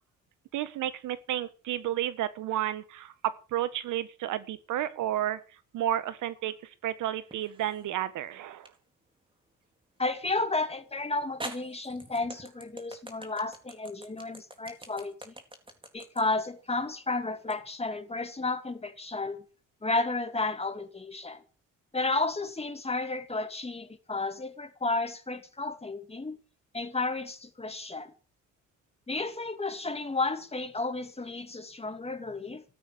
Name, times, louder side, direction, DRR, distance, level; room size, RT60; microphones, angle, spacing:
voice 1, 0.5-5.4 5.7-8.7, right 12 dB, 85° right, 1.6 m, -32 dB
sound 1, 7.3-7.9 8.7-8.8 10.6-10.7 11.4-17.6, right 2 dB, 15° right, 4.1 m, -44 dB
voice 2, 10.0-15.3 15.9-19.4 19.8-21.4 21.9-26.4 26.7-28.1 29.1-32.6, left 3 dB, 20° left, 2.5 m, -32 dB
15.0 x 12.5 x 6.8 m
cardioid pair, 90°, 30 cm